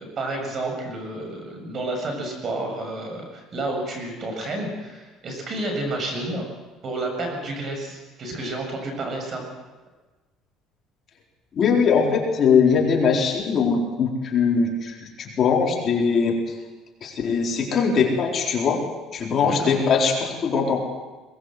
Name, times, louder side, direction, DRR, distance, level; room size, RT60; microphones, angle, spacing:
voice 1, 0.0-6.5 6.8-9.4 19.4-19.7, right 2 dB, 35° right, 3 dB, 7.4 m, -30 dB
voice 2, 11.5-16.6 17.0-18.8 19.1-20.8, left 5 dB, 40° left, -1 dB, 4.2 m, -21 dB
22.0 x 21.0 x 7.9 m, 1.2 s
cardioid pair, 140°, 0 cm